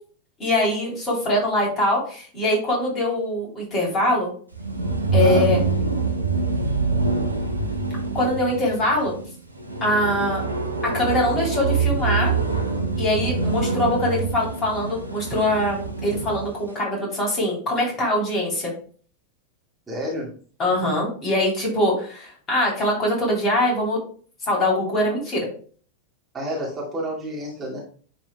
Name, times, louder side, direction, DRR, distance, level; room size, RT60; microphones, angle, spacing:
voice 1, 0.4-4.3 5.1-5.6 8.1-9.1 9.8-10.4 10.9-12.4 13.0-18.7 20.6-24.0 24.5-25.5, left 1 dB, 25° left, -3 dB, 3.3 m, -23 dB
sound 1, 4.5-16.5, right 4 dB, 85° right, 0.8 m, -25 dB
voice 2, 5.2-5.5 19.9-20.3 26.3-27.8, equal, 15° right, -5 dB, 2.2 m, -29 dB
10.5 x 4.4 x 2.2 m, 0.44 s
figure-of-eight pair, 90°, 0 cm